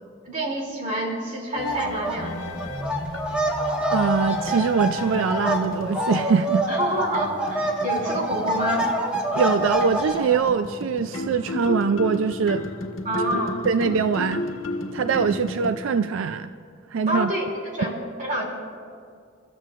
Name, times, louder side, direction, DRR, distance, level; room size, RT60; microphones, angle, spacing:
voice 1, 0.2-2.6 6.7-8.9 13.0-13.6 17.1-17.9 18.2-18.5, right 1 dB, 40° right, -1 dB, 2.9 m, -28 dB
sound 1, 1.5-15.7, left 1 dB, 85° left, 1.4 m, -33 dB
sound 2, 1.7-2.2 2.5-10.4, right 1 dB, 5° right, 1.5 m, -26 dB
voice 2, 3.9-6.7 9.3-12.7 13.6-14.4 14.9-16.5 16.9-17.3, right 5 dB, 85° right, 11 dB, 0.4 m, -23 dB
29.0 x 14.0 x 2.5 m, 2.2 s
head